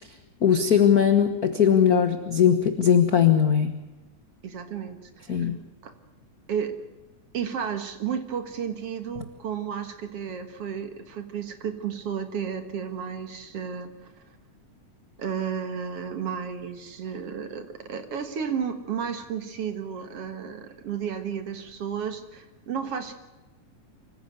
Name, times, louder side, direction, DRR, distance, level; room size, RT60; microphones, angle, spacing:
voice 1, 0.4-3.8 5.3-5.6, left 8 dB, 50° left, 8 dB, 1.1 m, -20 dB
voice 2, 4.4-5.5 5.8-5.9 6.5-6.8 7.3-14.1 15.2-23.1, right 7 dB, 55° right, 8 dB, 2.3 m, -32 dB
25.0 x 15.5 x 8.1 m, 1.1 s
omnidirectional pair, 3.5 m